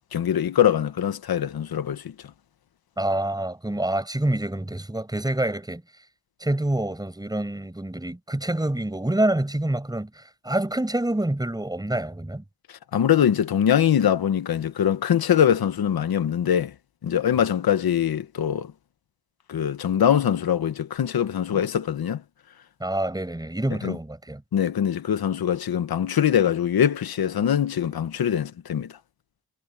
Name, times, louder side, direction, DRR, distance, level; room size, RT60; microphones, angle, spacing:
voice 1, 0.1-2.1 12.9-16.7 17.0-18.7 19.5-22.2 23.8-23.9 24.5-28.9, left 9 dB, 70° left, 1.5 m, -23 dB
voice 2, 3.0-5.8 6.4-12.4 22.8-24.4, right 1 dB, 10° right, 7.6 m, -27 dB
wide cardioid pair, 110°, 37 cm